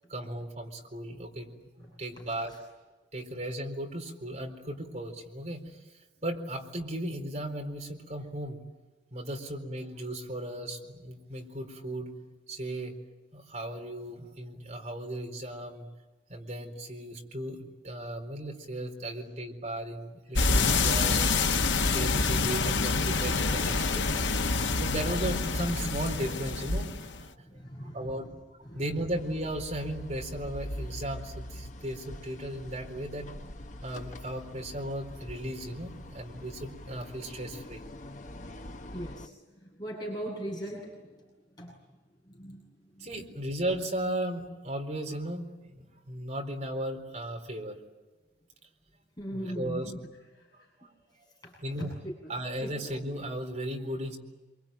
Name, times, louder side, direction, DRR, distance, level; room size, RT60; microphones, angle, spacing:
voice 1, 0.1-1.5 1.8-2.5 3.1-5.8 6.2-8.6 9.1-12.1 12.5-13.0 13.3-15.9 16.3-21.2 21.9-24.3 24.8-27.4 27.8-28.2 28.7-33.3 33.8-37.8 43.0-47.8 49.3-49.9 51.6-51.9 52.3-54.2, right 1 dB, 40° right, 2 dB, 4.1 m, -36 dB
voice 2, 1.8-2.6 27.4-28.3 28.6-29.0 38.9-41.3 41.5-41.7 42.2-43.1 49.2-50.0 50.3-50.9 51.2-52.3 52.6-52.7, equal, 20° left, -4 dB, 7.5 m, -41 dB
sound 1, 20.3-27.3, left 3 dB, 90° left, 1.3 m, -27 dB
sound 2, 29.1-39.3, left 1 dB, 40° left, 1.0 m, -44 dB
26.5 x 24.0 x 9.1 m, 1.2 s
head